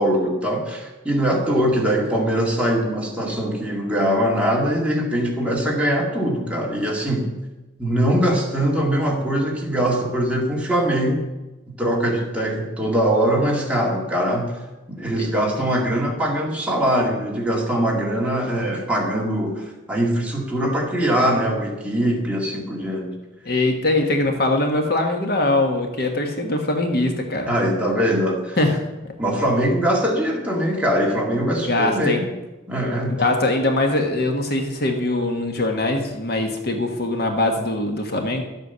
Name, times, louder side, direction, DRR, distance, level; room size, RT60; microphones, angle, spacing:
voice 1, 0.0-7.3 7.8-11.2 11.8-14.5 14.9-23.1 27.5-28.6 29.2-32.3 32.7-33.4, equal, 5° right, -2 dB, 2.1 m, -22 dB
voice 2, 23.4-27.5 28.6-28.9 31.7-32.2 33.2-38.4, left 2 dB, 50° left, 3 dB, 1.5 m, -22 dB
12.0 x 8.2 x 6.9 m, 1.1 s
head